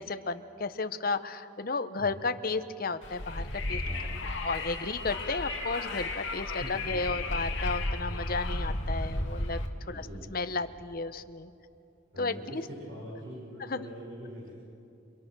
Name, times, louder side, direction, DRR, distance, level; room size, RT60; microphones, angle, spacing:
voice 1, 0.0-3.8 4.4-9.6 9.9-10.0 10.3-11.5 12.2-12.6 13.7-13.9, left 3 dB, 45° left, 10 dB, 0.9 m, -33 dB
Wind, 3.0-9.7, left 2 dB, 70° left, 2.4 m, -33 dB
voice 2, 3.8-4.1 6.6-7.0 9.9-10.3 12.1-14.6, equal, 60° right, -5 dB, 5.8 m, -43 dB
29.5 x 26.0 x 6.2 m, 2.7 s
head